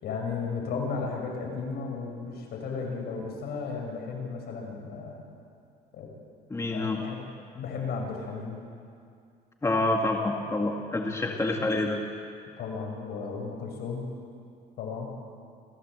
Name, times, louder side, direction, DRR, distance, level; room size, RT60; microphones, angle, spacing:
voice 1, 0.0-5.2 5.9-6.1 6.7-7.2 7.5-8.6 11.1-11.4 12.6-14.1 14.8-15.1, left 4 dB, 70° left, 1 dB, 6.2 m, -34 dB
voice 2, 6.5-7.0 9.6-12.0, left 2 dB, 15° left, 1 dB, 2.0 m, -27 dB
27.5 x 16.0 x 8.0 m, 2.4 s
cardioid pair, 110°, 17 cm